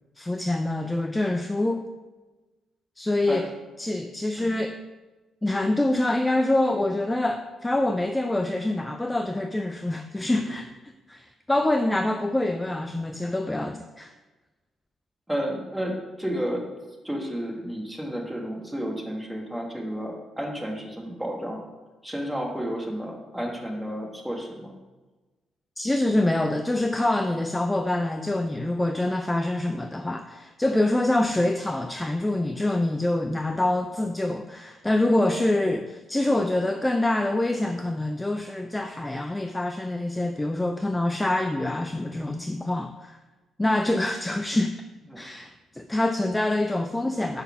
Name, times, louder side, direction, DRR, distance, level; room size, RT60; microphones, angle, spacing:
voice 1, 0.2-1.8 3.0-3.5 3.8-4.8 5.4-10.7 11.1-14.1 25.8-43.2 43.6-44.8 45.2-47.4, left 1 dB, 10° left, 7 dB, 0.4 m, -25 dB
voice 2, 15.3-16.7 17.0-21.7 22.0-24.7 45.1-45.2, equal, 5° right, 0 dB, 1.3 m, -31 dB
5.5 x 4.1 x 5.7 m, 1.2 s
cardioid pair, 90°, 0 cm